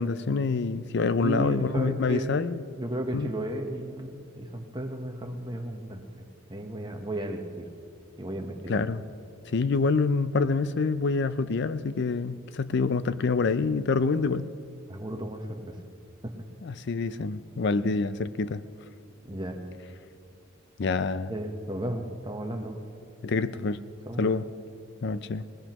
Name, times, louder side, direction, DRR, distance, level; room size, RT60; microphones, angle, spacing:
voice 1, 0.0-2.6 3.1-3.3 8.7-9.0 9.5-14.5 16.6-18.6 20.8-21.3 23.2-23.8 24.2-24.5 25.0-25.4, left 4 dB, 55° left, 14 dB, 0.4 m, -26 dB
voice 2, 1.2-2.4 2.8-6.2 6.5-7.7 8.2-8.9 14.9-15.8 16.2-16.3 19.2-19.6 21.3-22.8 24.1-24.3, right 1 dB, 20° right, 4 dB, 1.0 m, -34 dB
20.5 x 20.0 x 3.0 m, 2.5 s
head